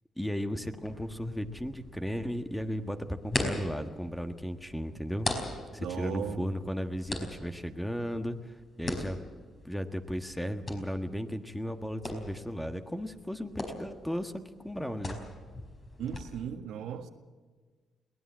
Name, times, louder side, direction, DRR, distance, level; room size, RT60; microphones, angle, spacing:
voice 1, 0.2-5.3 5.7-8.4 8.8-9.2 9.6-15.2, equal, 5° left, 7 dB, 1.5 m, -35 dB
sound 1, 0.7-16.2, left 2 dB, 35° left, 4.9 m, -41 dB
voice 2, 5.8-6.5 16.0-17.1, right 8 dB, 80° right, 6 dB, 1.7 m, -36 dB
22.0 x 18.0 x 7.4 m, 1.4 s
cardioid pair, 90°, 0 cm